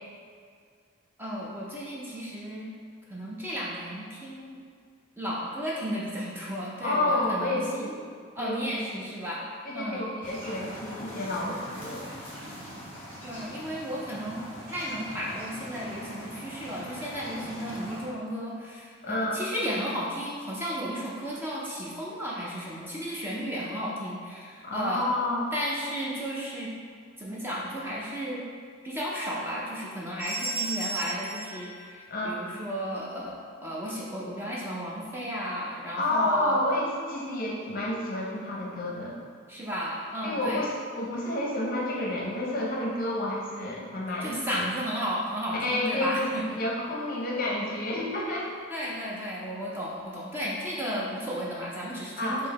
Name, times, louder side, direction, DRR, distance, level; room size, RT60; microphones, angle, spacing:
voice 1, 1.2-2.7 3.1-4.6 5.2-8.0 8.4-9.5 9.7-10.1 13.2-14.4 14.7-25.1 25.5-26.7 27.2-28.4 28.8-36.6 39.5-40.6 44.2-46.6 48.7-52.5, equal, 10° right, -6 dB, 0.5 m, -34 dB
voice 2, 6.8-7.9 8.4-8.6 8.9-9.0 9.6-12.1 19.0-19.4 24.6-25.5 32.1-32.4 35.9-39.2 40.2-44.6 45.5-48.5 52.2-52.4, left 1 dB, 45° left, -3 dB, 0.7 m, -30 dB
sound 1, 10.2-18.1, equal, 10° left, 1.0 m, -42 dB
sound 2, 30.2-32.6, right 3 dB, 65° right, 1.4 m, -35 dB
4.6 x 2.8 x 4.1 m, 2.1 s
head